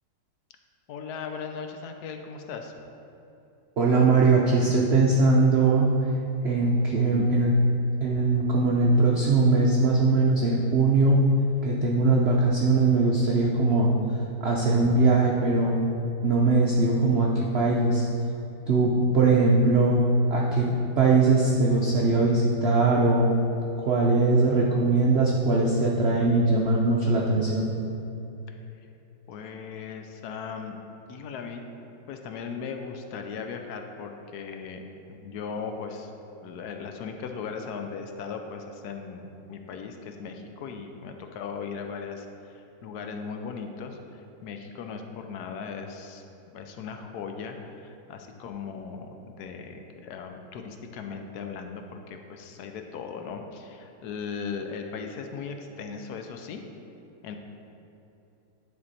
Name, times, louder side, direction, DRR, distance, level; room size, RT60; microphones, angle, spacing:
voice 1, 0.9-2.7 29.3-30.8 31.1-31.7 32.1-36.1 36.4-56.6 57.2-57.4, left 5 dB, 70° left, 5 dB, 1.1 m, -38 dB
voice 2, 3.8-5.9 6.4-7.6 8.0-11.2 11.6-13.9 14.4-15.8 16.2-18.1 18.7-20.0 20.3-20.7 21.0-23.3 23.8-27.7, right 3 dB, 75° right, -3 dB, 0.5 m, -21 dB
10.5 x 4.4 x 4.1 m, 2.9 s
omnidirectional pair, 2.0 m